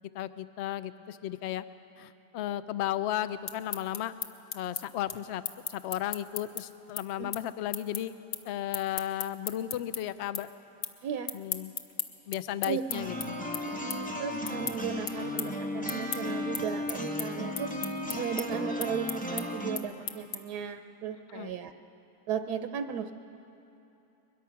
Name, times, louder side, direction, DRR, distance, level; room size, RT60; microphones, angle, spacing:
voice 1, 0.1-1.6 2.0-4.1 4.5-5.4 5.7-8.1 8.5-10.5 11.3-11.7 12.3-13.3 21.3-21.5, left 12 dB, 75° left, 13 dB, 0.6 m, -34 dB
sound 1, 3.3-10.0 10.3-11.0 11.2-20.6, left 7 dB, 55° left, 1.1 m, -37 dB
sound 2, 12.9-19.8, left 1 dB, 5° left, 0.8 m, -35 dB
voice 2, 13.8-17.7 18.2-21.7 22.3-23.1, right 8 dB, 75° right, 8 dB, 1.1 m, -35 dB
22.0 x 21.5 x 5.8 m, 2.9 s
omnidirectional pair, 1.8 m